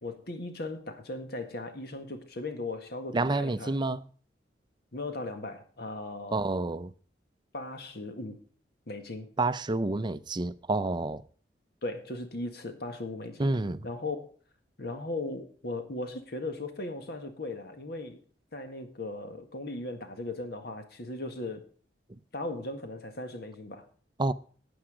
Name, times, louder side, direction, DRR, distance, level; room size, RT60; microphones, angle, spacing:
voice 1, 0.0-3.7 4.9-6.4 7.5-8.4 8.9-9.3 11.8-13.5 13.8-14.3 14.8-18.2 18.5-21.6 22.3-23.9, left 2 dB, 65° left, 1.8 m, -37 dB
voice 2, 3.1-4.1 6.3-6.9 9.4-11.2 13.4-13.9 24.2-24.3, right 2 dB, 25° right, 0.5 m, -29 dB
12.0 x 8.8 x 5.0 m
head